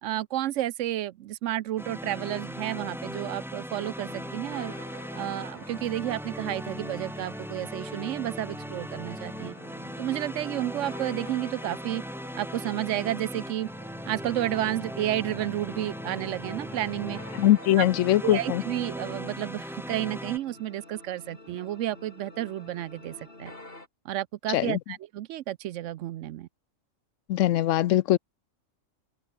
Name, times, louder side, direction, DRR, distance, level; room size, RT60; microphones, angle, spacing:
voice 1, 0.0-4.7 5.1-9.6 10.0-12.0 12.3-13.7 14.1-17.2 17.8-17.9 18.2-23.5 24.0-26.5, right 13 dB, 75° right, 0.9 m, -31 dB
sound 1, 1.8-20.4, equal, ahead, 1.6 m, -38 dB
sound 2, 4.1-23.9, left 2 dB, 45° left, 4.3 m, -49 dB
voice 2, 17.3-18.6 24.5-24.8 27.3-28.2, left 14 dB, 75° left, 0.9 m, -22 dB
open air
omnidirectional pair, 1.3 m